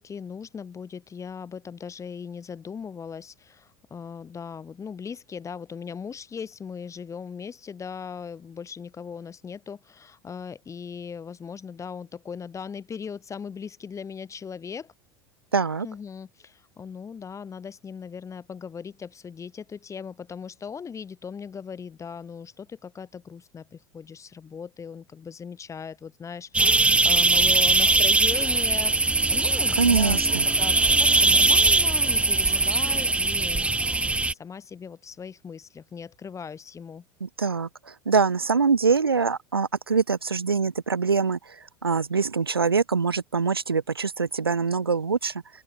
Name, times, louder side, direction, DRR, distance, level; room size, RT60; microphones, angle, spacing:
voice 1, 0.0-14.9 15.8-30.2 30.6-33.8 34.3-37.0, left 6 dB, 25° left, 6.2 m, -38 dB
voice 2, 15.5-15.9 29.8-30.4 37.2-45.4, right 5 dB, 90° right, 0.7 m, -24 dB
sound 1, 26.5-34.3, right 3 dB, 10° right, 0.8 m, -21 dB
open air
figure-of-eight pair, 80°, 12 cm